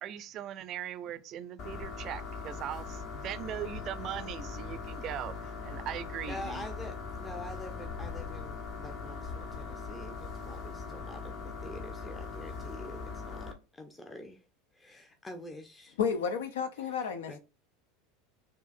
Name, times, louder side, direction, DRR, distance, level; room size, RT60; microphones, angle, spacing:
voice 1, 0.0-6.7, right 11 dB, 40° right, 0.5 m, -40 dB
sound 1, 1.6-13.5, left 4 dB, 45° left, 0.9 m, -40 dB
voice 2, 6.3-14.4 14.7-16.0 16.8-17.4, left 1 dB, 15° left, 0.6 m, -46 dB
voice 3, 16.0-17.4, left 6 dB, 65° left, 0.5 m, -31 dB
6.7 x 2.5 x 2.5 m
figure-of-eight pair, 80°, 0 cm